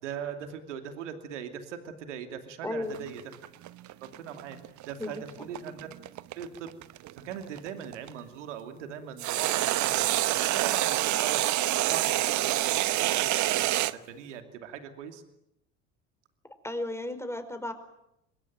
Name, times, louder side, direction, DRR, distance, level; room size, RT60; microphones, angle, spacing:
voice 1, 0.0-3.2 4.2-4.6 4.9-5.9 6.4-15.2, right 8 dB, 85° right, 7 dB, 2.7 m, -40 dB
voice 2, 2.6-3.1 5.0-5.2 16.6-17.7, left 1 dB, 5° left, 9 dB, 5.0 m, -34 dB
sound 1, 2.9-8.1 9.2-13.9, right 15 dB, 55° right, 1.0 m, -27 dB
27.0 x 21.5 x 9.3 m, 0.83 s
hypercardioid pair, 70°, 35 cm